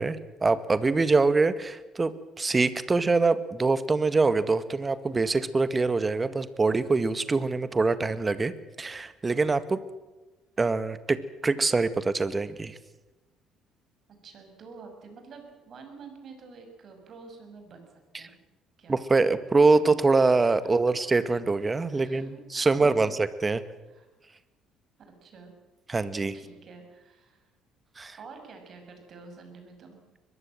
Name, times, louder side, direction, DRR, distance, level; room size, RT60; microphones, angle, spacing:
voice 1, 0.0-8.5 8.8-9.8 10.6-12.8 18.1-18.3 18.9-23.6 25.9-26.4 28.0-28.2, right 3 dB, 25° right, 14 dB, 1.8 m, -24 dB
voice 2, 14.2-18.4 18.8-19.0 20.9-21.0 21.9-23.1 23.9-24.1 25.1-25.5 26.3-27.5 28.2-30.0, right 4 dB, 50° right, 5 dB, 7.0 m, -48 dB
23.0 x 21.0 x 7.8 m, 1.1 s
figure-of-eight pair, 50°, 0 cm